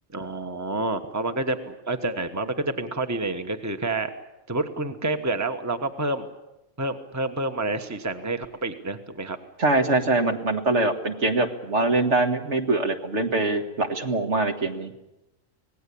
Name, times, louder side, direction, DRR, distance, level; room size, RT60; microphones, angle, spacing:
voice 1, 0.1-4.1 4.5-6.3 6.8-9.4, right 2 dB, 15° right, 7 dB, 1.3 m, -28 dB
voice 2, 9.6-14.9, right 2 dB, 60° right, 5 dB, 2.0 m, -23 dB
26.0 x 18.5 x 8.6 m, 0.94 s
omnidirectional pair, 1.3 m